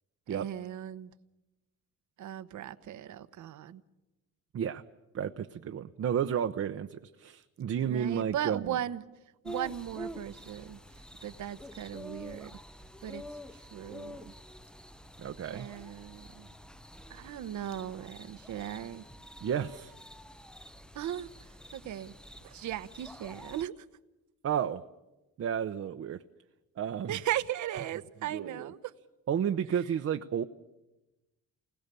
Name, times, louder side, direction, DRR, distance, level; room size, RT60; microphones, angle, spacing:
voice 1, 0.3-1.1 2.2-3.8 7.9-9.0 9.4-10.8 11.2-12.6 13.0-13.2 13.5-14.3 15.4-16.5 17.1-19.0 20.9-21.3 21.7-22.1 22.4-23.8 27.1-28.8, right 11 dB, 75° right, 1.1 m, -37 dB
voice 2, 5.1-8.8 15.2-15.7 19.4-20.0 24.4-24.8 25.4-26.2 26.8-27.2 28.3-28.7 29.3-30.4, right 8 dB, 50° right, 0.9 m, -32 dB
sound 1, 9.4-23.6, equal, 5° left, 0.8 m, -48 dB
28.5 x 20.5 x 6.9 m
cardioid pair, 90°, 30 cm